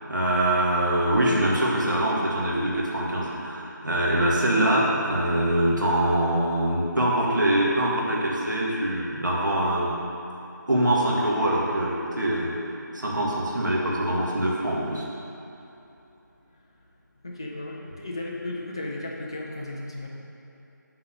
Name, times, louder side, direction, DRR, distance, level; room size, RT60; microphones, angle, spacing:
voice 1, 0.0-10.0 10.7-12.6 12.9-15.1, right 1 dB, 70° right, -4 dB, 1.9 m, -24 dB
voice 2, 17.2-20.1, left 2 dB, 15° left, -2 dB, 0.5 m, -35 dB
7.8 x 4.2 x 6.3 m, 2.9 s
figure-of-eight pair, 170°, 11 cm